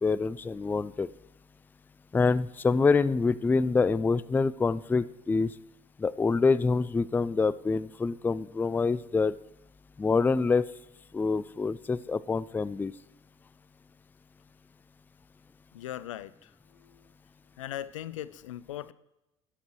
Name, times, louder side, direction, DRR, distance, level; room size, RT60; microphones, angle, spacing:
voice 1, 0.0-1.1 2.1-5.5 6.0-9.3 10.0-10.7 11.1-12.9, left 4 dB, 10° left, 18 dB, 0.3 m, -26 dB
voice 2, 15.7-17.1 17.6-18.9, left 12 dB, 80° left, 18 dB, 0.4 m, -40 dB
19.5 x 7.3 x 3.1 m, 0.95 s
figure-of-eight pair, 60°, 16 cm